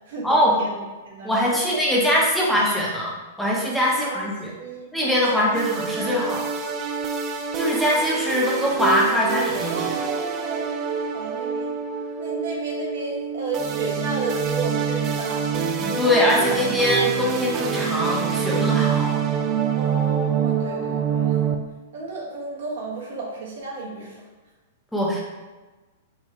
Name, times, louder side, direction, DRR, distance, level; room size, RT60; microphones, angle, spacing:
voice 1, 0.1-0.8 1.0-1.6 3.9-4.3 4.6-4.9 5.3-5.5 5.9-6.2 9.6-11.8 12.2-15.6 19.7-21.3 21.9-24.2, right 3 dB, 70° right, -3 dB, 1.3 m, -33 dB
voice 2, 1.2-4.5 4.9-6.4 7.5-9.9 15.8-19.2 24.9-25.2, equal, ahead, -5 dB, 1.0 m, -22 dB
sound 1, 5.5-21.6, right 7 dB, 35° right, 0.4 m, -26 dB
4.7 x 2.6 x 3.2 m, 1.2 s
hypercardioid pair, 110°, 0 cm